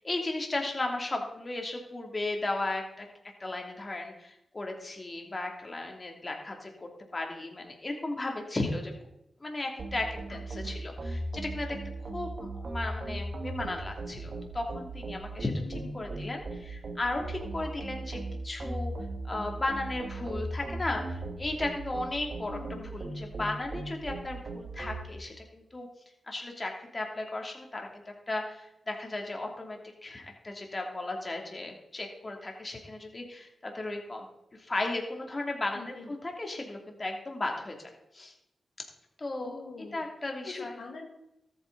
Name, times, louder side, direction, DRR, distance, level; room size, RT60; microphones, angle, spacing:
voice 1, 0.0-3.1 3.4-8.9 9.4-11.8 12.1-15.6 15.9-18.9 19.2-25.9 26.3-34.3 34.6-38.3 39.2-39.6 39.9-40.7, left 2 dB, 35° left, 2 dB, 2.9 m, -35 dB
sound 1, 9.8-25.0, right 2 dB, 60° right, 2.0 m, -38 dB
voice 2, 10.3-10.8 15.6-16.0 22.5-22.9 35.7-36.1 39.4-40.0 40.4-41.1, left 4 dB, 75° left, 0 dB, 1.6 m, -44 dB
13.5 x 8.8 x 4.0 m, 0.85 s
supercardioid pair, 45°, 0 cm